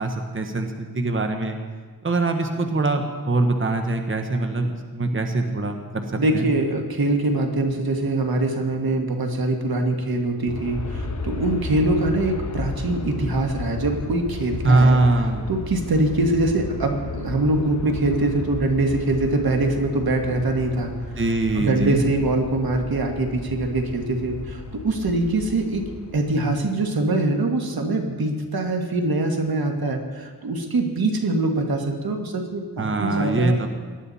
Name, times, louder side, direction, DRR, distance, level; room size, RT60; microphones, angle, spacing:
voice 1, 0.0-1.6 2.0-6.5 14.6-15.4 21.2-22.0 32.8-33.7, right 2 dB, 35° right, 5 dB, 1.2 m, -22 dB
voice 2, 6.2-15.0 15.5-20.9 21.6-25.9 26.1-33.6, right 2 dB, 75° right, 3 dB, 1.8 m, -23 dB
Aircraft, 10.5-26.7, left 3 dB, 50° left, 1.2 m, -34 dB
18.5 x 12.0 x 4.2 m, 1.5 s
wide cardioid pair, 70°, 37 cm